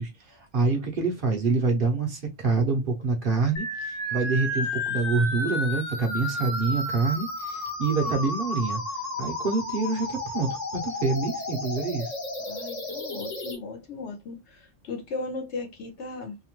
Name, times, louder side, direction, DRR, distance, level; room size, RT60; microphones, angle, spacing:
voice 1, 0.0-8.8 9.2-12.2, right 4 dB, 50° right, 0.8 m, -26 dB
sound 1, 3.6-13.6, left 1 dB, 40° left, 0.8 m, -32 dB
voice 2, 12.4-16.4, left 3 dB, 65° left, 1.1 m, -37 dB
2.8 x 2.2 x 3.0 m
omnidirectional pair, 1.3 m